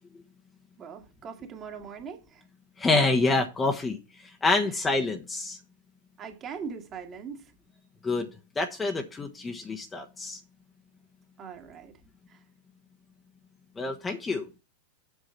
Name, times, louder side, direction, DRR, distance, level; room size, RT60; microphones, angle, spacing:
voice 1, 0.8-2.4 4.7-4.8 6.2-7.5 11.4-12.0 12.3-12.4, right 6 dB, 30° right, 1.9 m, -41 dB
voice 2, 2.8-4.0 4.4-5.6 8.0-8.3 8.6-10.4 13.8-14.4, left 3 dB, 15° left, 1.2 m, -27 dB
8.2 x 6.3 x 5.7 m
figure-of-eight pair, 90°, 0 cm